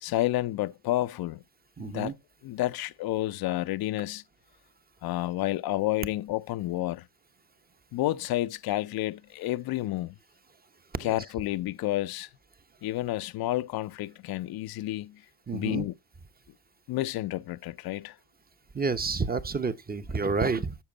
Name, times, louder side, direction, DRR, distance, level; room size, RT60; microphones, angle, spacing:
voice 1, 0.0-1.4 1.8-2.1 2.4-4.2 5.0-7.1 7.9-10.1 11.0-12.3 12.8-15.2 15.5-15.9 16.9-18.2, left 15 dB, 55° left, 0.6 m, -30 dB
voice 2, 1.8-2.1 11.0-11.2 15.5-15.8 18.7-20.8, right 4 dB, 20° right, 0.9 m, -29 dB
10.0 x 6.7 x 4.0 m
hypercardioid pair, 65°, 45 cm